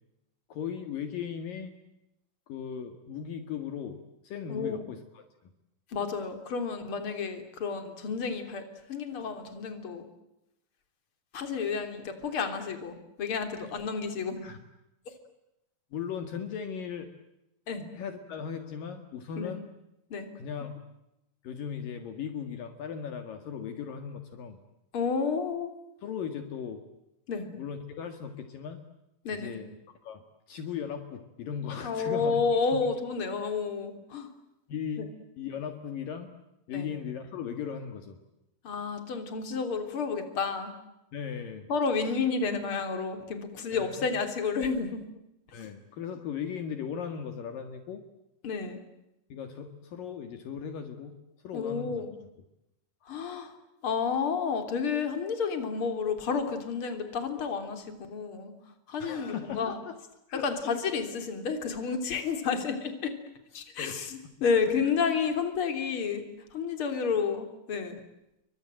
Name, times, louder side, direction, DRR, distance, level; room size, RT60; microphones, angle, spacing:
voice 1, 0.5-1.7 2.5-4.0 4.2-5.3 14.4-14.6 15.9-17.1 17.9-19.7 20.4-20.8 21.4-24.6 26.0-26.8 27.6-28.8 29.3-29.7 30.0-32.4 32.7-32.8 34.7-35.0 35.4-36.3 36.7-38.2 41.1-41.7 43.7-44.1 45.5-48.1 49.3-51.2 51.4-52.0 59.0-59.9 60.3-60.8 63.8-64.0, left 7 dB, 65° left, 7 dB, 3.4 m, -37 dB
voice 2, 4.5-4.8 5.9-10.0 11.3-14.5 15.1-15.2 17.7-17.9 19.4-19.6 20.1-20.3 24.9-25.7 27.3-27.5 29.2-29.6 31.8-34.3 35.0-35.1 36.7-36.9 38.6-40.7 41.7-45.0 45.6-45.7 48.4-48.8 51.5-52.1 53.1-53.6 53.8-58.5 58.9-59.8 60.4-63.2 63.5-66.2 66.5-68.0, left 5 dB, 35° left, 7 dB, 3.8 m, -31 dB
30.0 x 24.0 x 7.8 m, 0.90 s
omnidirectional pair, 4.4 m